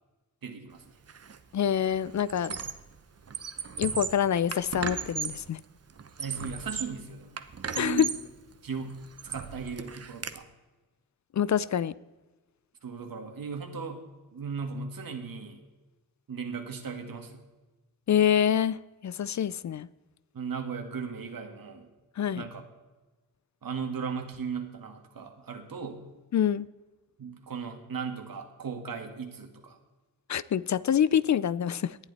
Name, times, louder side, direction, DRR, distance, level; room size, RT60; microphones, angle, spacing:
voice 1, 0.4-1.0 6.2-7.4 7.7-8.1 8.6-10.5 12.8-14.0 14.3-15.6 16.3-17.4 20.3-21.9 22.4-22.6 23.6-26.0 27.2-29.8, right 5 dB, 75° right, 5 dB, 2.1 m, -37 dB
Squeak, 1.1-1.4 1.7-2.9 3.2-5.5 6.0-7.0 7.4-8.3 8.8-10.4, right 6 dB, 45° right, 0.9 m, -37 dB
voice 2, 1.5-2.6 3.8-5.6 7.7-8.1 11.3-11.9 18.1-19.9 22.2-22.4 26.3-26.7 30.3-32.0, left 9 dB, 55° left, 19 dB, 0.5 m, -26 dB
19.0 x 11.5 x 4.2 m, 1.2 s
wide cardioid pair, 140°, 35 cm